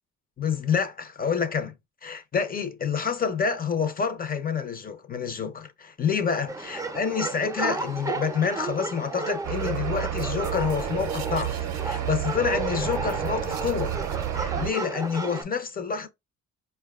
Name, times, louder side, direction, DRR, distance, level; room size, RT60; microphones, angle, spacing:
voice 1, 0.4-1.7 2.0-14.0 14.3-16.1, left 6 dB, 30° left, 0.6 m, -28 dB
sound 1, 6.5-15.4, right 3 dB, 10° right, 0.5 m, -33 dB
sound 2, 9.4-14.7, right 11 dB, 65° right, 0.5 m, -30 dB
4.4 x 2.2 x 2.3 m
cardioid pair, 90°, 30 cm